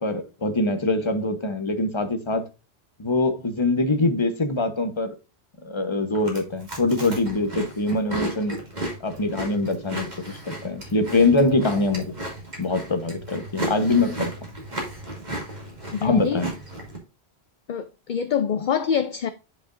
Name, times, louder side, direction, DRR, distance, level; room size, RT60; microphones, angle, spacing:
voice 1, 0.0-2.5 3.0-5.1 5.6-8.6 9.0-12.1 12.6-14.3 16.0-16.5, left 2 dB, 25° left, 1.1 m, -23 dB
Chewing mastication, 6.1-17.0, right 1 dB, 40° right, 2.6 m, -34 dB
voice 2, 15.9-16.4 17.7-19.3, left 7 dB, 55° left, 0.6 m, -25 dB
9.8 x 5.3 x 2.5 m
omnidirectional pair, 1.1 m